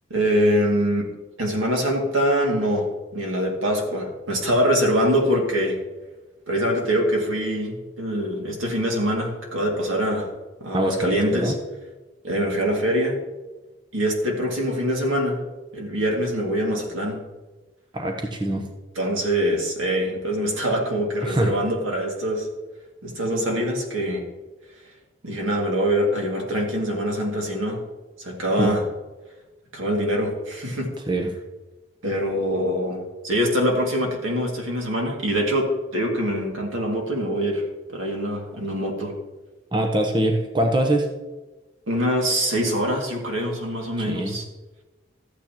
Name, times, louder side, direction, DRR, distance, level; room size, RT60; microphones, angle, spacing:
voice 1, 0.1-1.1 1.4-5.8 6.5-10.3 10.6-11.5 12.2-13.2 13.9-15.4 15.7-17.2 18.5-18.6 19.0-22.5 23.0-24.3 25.2-27.8 28.2-28.9 29.7-30.9 32.0-37.6 37.9-39.2 41.9-44.4, equal, 90° right, 0 dB, 2.2 m, -24 dB
voice 2, 10.7-11.6 17.9-18.6 21.2-21.6 28.6-28.7 31.1-31.3 39.7-41.1 44.1-44.4, right 1 dB, 25° right, 3 dB, 0.8 m, -23 dB
13.5 x 8.6 x 2.9 m, 1.1 s
head